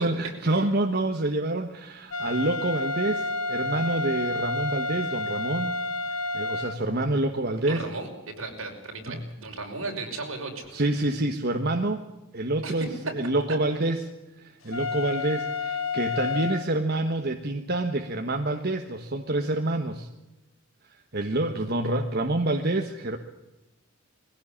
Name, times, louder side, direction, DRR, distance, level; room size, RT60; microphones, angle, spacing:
voice 1, 0.0-5.8 6.3-7.8 9.1-9.2 10.7-12.1 12.3-14.0 14.4-20.1 21.1-23.2, right 2 dB, 50° right, 5 dB, 1.3 m, -27 dB
sound 1, 2.1-6.8 14.7-16.6, left 3 dB, 75° left, 1.6 m, -30 dB
voice 2, 7.6-8.1 8.4-10.8 12.6-12.8, right 3 dB, 75° right, 1 dB, 5.6 m, -36 dB
21.5 x 16.5 x 8.6 m, 1.0 s
head